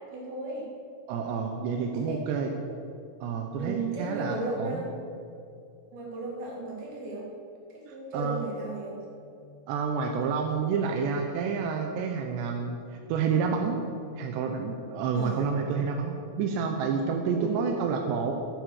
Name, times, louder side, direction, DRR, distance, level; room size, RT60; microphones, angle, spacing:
voice 1, 0.1-0.7 1.9-2.2 3.6-4.9 5.9-7.3 7.7-9.0 15.1-15.5 17.3-17.7, right 3 dB, 50° right, -3 dB, 4.5 m, -34 dB
voice 2, 1.1-2.5 3.2-4.8 7.9-8.4 9.7-13.8 14.2-18.3, right 5 dB, 75° right, 3 dB, 2.6 m, -29 dB
13.5 x 13.0 x 6.6 m, 2.5 s
omnidirectional pair, 6.0 m